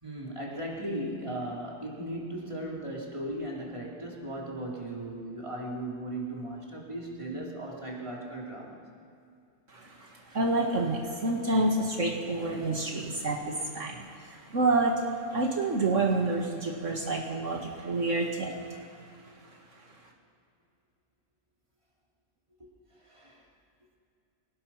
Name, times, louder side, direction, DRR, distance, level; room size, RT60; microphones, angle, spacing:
voice 1, 0.0-8.8 22.6-22.7 23.0-23.5, right 1 dB, 25° right, -3 dB, 3.5 m, -37 dB
voice 2, 9.7-15.0 15.3-18.8, right 2 dB, 70° right, 0 dB, 2.3 m, -28 dB
26.0 x 19.0 x 5.8 m, 2.6 s
omnidirectional pair, 1.3 m